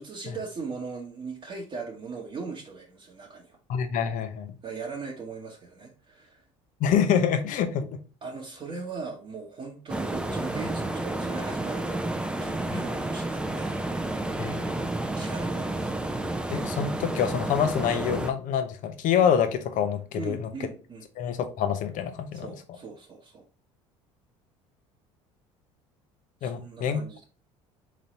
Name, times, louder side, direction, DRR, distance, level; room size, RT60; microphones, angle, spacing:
voice 1, 0.0-3.6 4.6-6.4 8.2-13.7 15.2-15.9 20.1-21.0 22.3-23.4 26.4-27.2, right 4 dB, 35° right, 1.1 m, -39 dB
voice 2, 3.7-4.5 6.8-7.9 12.7-12.8 14.4-14.9 16.5-20.5 21.2-22.5 26.4-27.0, left 8 dB, 55° left, 0.8 m, -26 dB
sound 1, 9.9-18.3, right 2 dB, 5° right, 0.5 m, -31 dB
3.9 x 3.2 x 4.1 m
hypercardioid pair, 70°, 16 cm